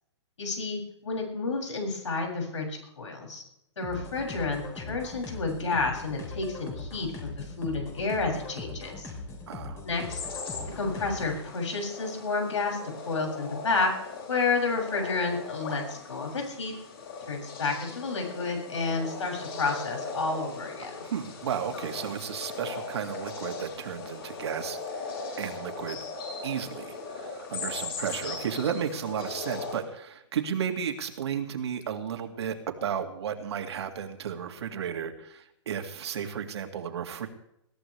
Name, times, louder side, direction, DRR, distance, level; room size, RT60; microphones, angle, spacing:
voice 1, 0.4-3.4 3.8-9.1 9.8-10.2 10.8-12.8 13.1-13.9 14.3-16.7 17.3-21.0, left 4 dB, 85° left, 1 dB, 7.3 m, -30 dB
sound 1, 3.8-11.4, left 3 dB, 20° left, 3.6 m, -40 dB
voice 2, 9.5-9.8 21.0-26.0 26.4-37.3, right 8 dB, 65° right, 5 dB, 2.5 m, -33 dB
sound 2, 9.9-29.8, left 4 dB, 50° left, 7.4 m, -39 dB
22.0 x 14.5 x 3.4 m, 0.80 s
hypercardioid pair, 155°, 15 cm